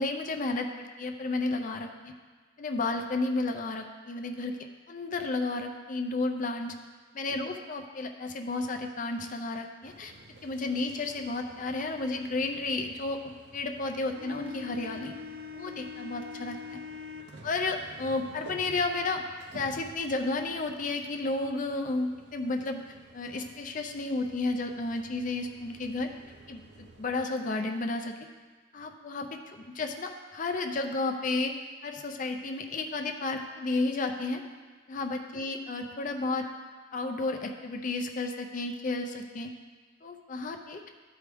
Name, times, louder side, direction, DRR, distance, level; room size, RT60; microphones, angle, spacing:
voice 1, 0.0-2.1 2.6-4.5 4.9-6.7 7.1-10.1 10.4-15.2 15.5-16.8 17.4-19.2 19.5-22.8 23.1-26.1 26.5-26.6 27.0-28.2 28.7-31.5 31.8-34.4 34.9-36.5 36.9-39.5 40.0-40.9, left 3 dB, 40° left, 4 dB, 0.5 m, -32 dB
sound 1, 9.8-27.2, left 3 dB, 55° right, 0.6 m, -48 dB
12.0 x 4.7 x 3.5 m, 1.4 s
head